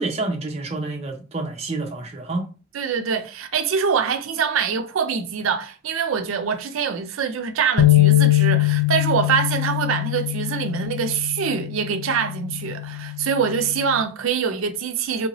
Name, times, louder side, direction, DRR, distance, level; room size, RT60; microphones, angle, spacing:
voice 1, 0.0-2.5, right 2 dB, 30° right, 0.6 m, -28 dB
voice 2, 2.7-15.3, right 6 dB, 85° right, 0.5 m, -24 dB
sound 1, 7.8-14.0, left 16 dB, 90° left, 0.4 m, -22 dB
3.3 x 2.7 x 2.9 m
head